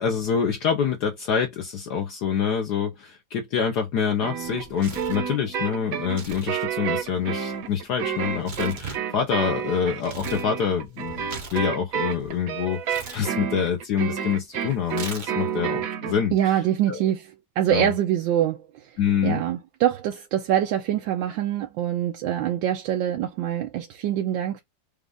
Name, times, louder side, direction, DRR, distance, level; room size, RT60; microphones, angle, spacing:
voice 1, 0.0-16.6 16.9-17.0 17.7-17.9 19.0-19.4, left 7 dB, 65° left, 1.2 m, -26 dB
sound 1, 4.2-16.2, right 8 dB, 60° right, 0.9 m, -30 dB
Tearing, 4.4-5.3 6.0-6.5 6.8-10.5 10.8-12.3 12.8-13.2 14.9-15.6, right 4 dB, 45° right, 0.6 m, -40 dB
voice 2, 16.3-18.8 19.2-24.6, right 11 dB, 80° right, 1.4 m, -24 dB
5.1 x 2.4 x 3.4 m
omnidirectional pair, 2.1 m